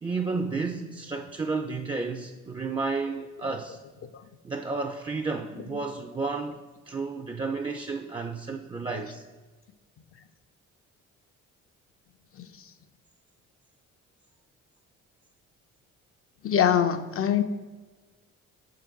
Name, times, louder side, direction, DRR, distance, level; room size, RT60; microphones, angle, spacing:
voice 1, 0.0-3.8 4.4-9.2, right 4 dB, 15° right, 4 dB, 0.4 m, -32 dB
voice 2, 12.4-12.7 16.4-17.4, left 9 dB, 50° left, 7 dB, 0.4 m, -24 dB
6.3 x 3.8 x 4.6 m, 1.3 s
cardioid pair, 90°, 30 cm